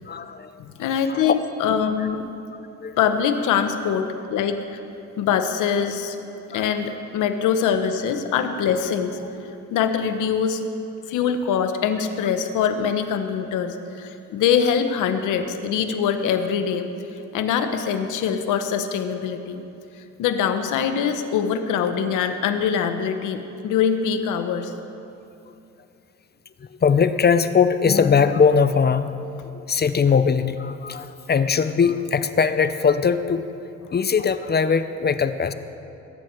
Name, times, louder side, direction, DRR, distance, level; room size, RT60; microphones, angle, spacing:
voice 1, 0.1-0.6 1.1-1.3 2.0-2.1 2.8-3.0 6.5-7.0 26.6-29.2 29.5-33.4 33.9-35.5, left 6 dB, 35° left, 12 dB, 0.7 m, -20 dB
voice 2, 0.6-2.3 3.0-4.6 5.2-6.2 6.5-10.6 11.1-16.9 17.3-19.6 20.2-24.7, left 7 dB, 90° left, 8 dB, 1.0 m, -23 dB
21.5 x 9.5 x 4.5 m, 2.8 s
cardioid pair, 90°, 30 cm